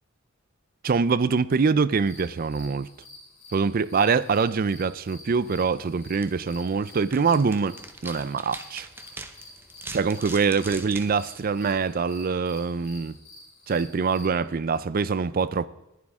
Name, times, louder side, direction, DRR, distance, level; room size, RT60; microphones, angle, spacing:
voice 1, 0.8-2.9 3.5-8.9 9.9-13.2 13.7-15.7, right 5 dB, 45° right, 0.4 m, -24 dB
sound 1, 2.0-14.3, left 2 dB, 30° left, 4.5 m, -49 dB
sound 2, 5.2-12.2, right 2 dB, 10° right, 0.8 m, -44 dB
20.5 x 11.5 x 3.6 m
head